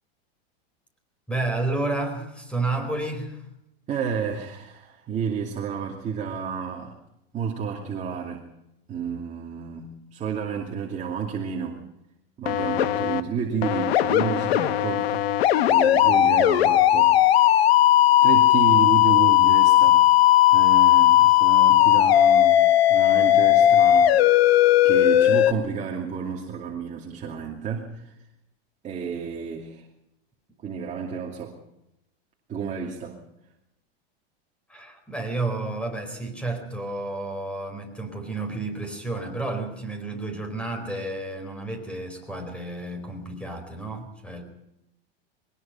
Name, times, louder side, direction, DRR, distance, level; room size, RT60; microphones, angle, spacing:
voice 1, 1.3-3.5 34.7-44.4, right 2 dB, 5° left, 5 dB, 4.5 m, -31 dB
voice 2, 3.9-6.9 7.3-8.4 8.9-11.8 12.4-15.2 15.6-17.8 18.2-20.1 20.5-22.6 22.9-24.1 24.8-28.2 28.8-29.9 30.6-31.6 32.5-33.2, right 6 dB, 25° right, -1 dB, 2.6 m, -31 dB
sound 1, 12.5-13.2 13.6-25.5, left 13 dB, 80° left, 1.5 m, -17 dB
22.0 x 20.0 x 5.9 m, 0.86 s
supercardioid pair, 150°, 30 cm